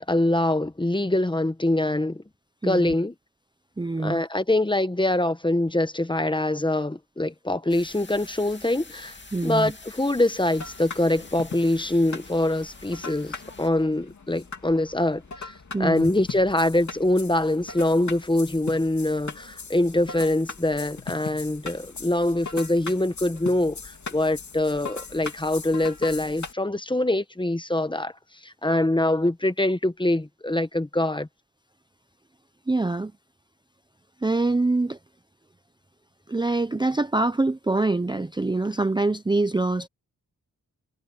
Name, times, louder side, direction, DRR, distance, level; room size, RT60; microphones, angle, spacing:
voice 1, 0.0-2.2 2.6-3.1 4.0-9.2 9.4-15.5 15.8-28.1 28.4-31.3, left 1 dB, 15° left, 1.0 m, -24 dB
voice 2, 2.6-2.9 3.8-4.2 9.3-9.7 15.7-16.1 32.7-33.1 34.2-35.0 36.3-39.9, right 2 dB, 15° right, 0.6 m, -24 dB
sound 1, 7.7-13.7, left 3 dB, 30° left, 2.5 m, -46 dB
sound 2, 10.5-26.5, left 4 dB, 50° left, 2.9 m, -40 dB
wide cardioid pair, 105°, 35 cm